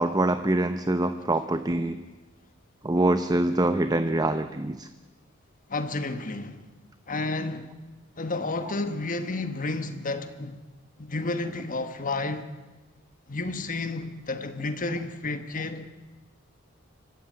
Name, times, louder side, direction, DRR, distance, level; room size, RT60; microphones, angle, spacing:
voice 1, 0.0-2.0 2.8-4.9, right 2 dB, 20° right, 0.8 m, -24 dB
voice 2, 5.7-6.6 7.1-7.7 8.2-10.6 11.0-12.5 13.3-15.9, left 2 dB, 40° left, 1.4 m, -31 dB
25.0 x 15.5 x 9.6 m
head